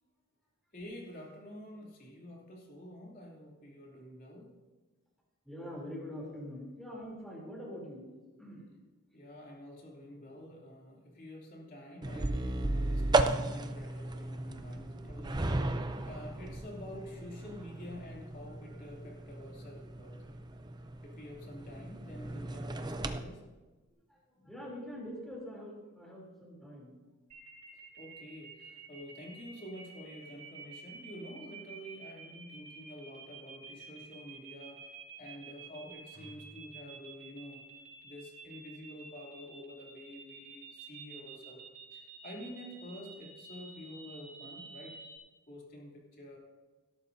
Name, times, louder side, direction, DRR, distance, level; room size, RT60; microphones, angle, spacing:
voice 1, 0.7-4.5 9.1-20.1 20.5-20.6 21.0-23.4 24.4-24.5 28.0-34.9 35.2-37.6 38.0-41.6 41.9-44.9 45.5-46.4, equal, 40° left, -2 dB, 2.9 m, -48 dB
voice 2, 5.4-8.1 8.4-8.7 24.1-24.2 24.4-27.0, equal, ahead, -4 dB, 3.2 m, -44 dB
sound 1, 12.0-23.2, right 2 dB, 20° right, 0.5 m, -35 dB
sound 2, 27.3-45.2, right 5 dB, 90° right, 4.7 m, -50 dB
18.0 x 12.5 x 2.7 m, 1.3 s
head